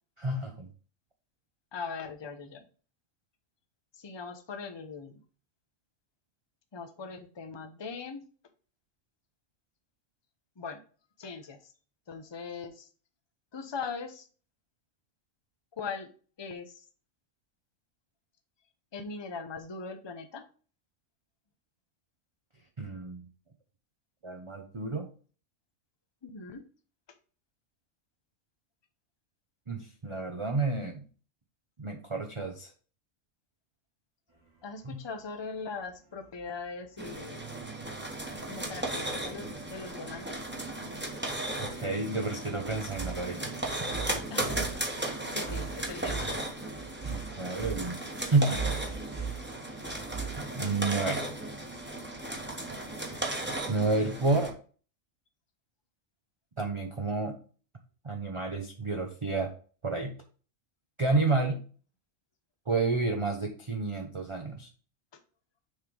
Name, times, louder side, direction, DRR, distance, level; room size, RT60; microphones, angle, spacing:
voice 1, 0.2-0.7 22.8-23.2 24.2-25.1 29.7-31.0 31.8-32.7 34.8-35.0 41.6-43.5 44.1-44.2 47.0-48.8 50.4-51.3 53.7-54.5 56.6-57.4 58.0-59.5 59.8-60.1 61.0-61.6 62.7-64.7, right 3 dB, 30° right, 2 dB, 0.6 m, -30 dB
voice 2, 1.7-2.7 3.9-5.2 6.7-8.2 10.6-10.8 11.2-11.7 12.1-12.9 13.5-14.3 15.7-16.1 16.4-16.9 18.9-20.4 26.2-26.6 34.6-37.5 38.4-40.4 44.3-44.8 45.3-46.4 61.1-61.6, left 4 dB, 25° left, 7 dB, 0.7 m, -40 dB
sound 1, 34.3-50.6, right 6 dB, 70° right, 2.8 m, -42 dB
sound 2, 37.0-54.5, right 1 dB, 10° right, 1.1 m, -36 dB
6.5 x 3.2 x 5.2 m, 0.40 s
omnidirectional pair, 1.4 m